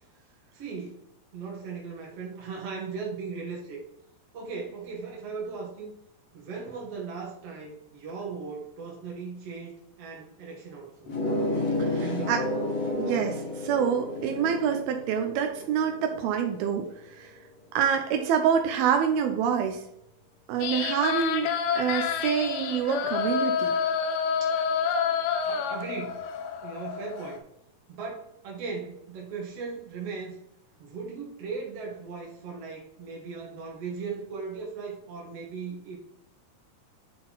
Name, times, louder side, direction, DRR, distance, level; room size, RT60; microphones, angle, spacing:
voice 1, 0.5-1.0 1.3-3.8 4.3-5.9 6.3-11.2 12.0-12.4 24.4-24.6 25.5-26.2 26.6-27.4 27.9-30.4 30.8-36.0, right 5 dB, 60° right, -2 dB, 1.7 m, -38 dB
sound 1, 11.1-16.3, left 1 dB, 45° left, 2.2 m, -31 dB
sound 2, 12.2-18.2 18.6-18.7 19.2-19.3, left 1 dB, 75° left, 3.3 m, -41 dB
voice 2, 13.0-17.3 17.8-19.8 20.5-23.8, right 8 dB, 85° right, 4 dB, 2.6 m, -26 dB
sound 3, 20.6-27.4, left 6 dB, 90° left, 2.7 m, -28 dB
10.5 x 3.9 x 3.9 m, 0.76 s
omnidirectional pair, 4.3 m